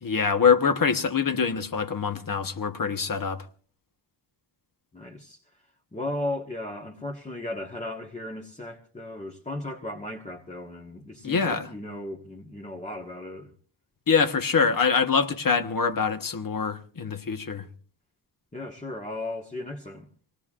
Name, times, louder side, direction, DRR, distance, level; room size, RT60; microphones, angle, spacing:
voice 1, 0.0-3.5 11.2-11.7 14.1-17.7, left 6 dB, 50° left, 1.2 m, -24 dB
voice 2, 4.9-5.4 5.9-13.5 18.5-20.1, left 1 dB, 15° left, 1.4 m, -36 dB
26.0 x 18.5 x 2.5 m
wide cardioid pair, 130°, 42 cm